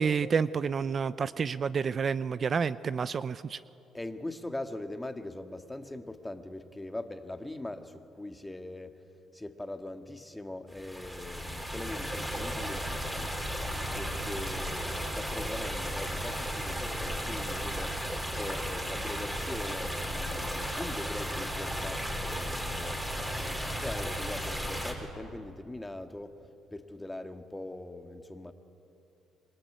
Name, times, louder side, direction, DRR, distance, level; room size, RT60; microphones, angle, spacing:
voice 1, 0.0-3.6, right 6 dB, 45° right, 15 dB, 0.6 m, -29 dB
voice 2, 3.9-9.0 9.3-13.3 14.0-18.0 18.3-23.0 23.3-26.4 26.7-28.5, left 1 dB, 10° left, 7 dB, 2.0 m, -41 dB
sound 1, 10.7-24.9, equal, 5° right, 5.3 m, -34 dB
27.0 x 23.5 x 9.3 m, 2.9 s
supercardioid pair, 80°, 0 cm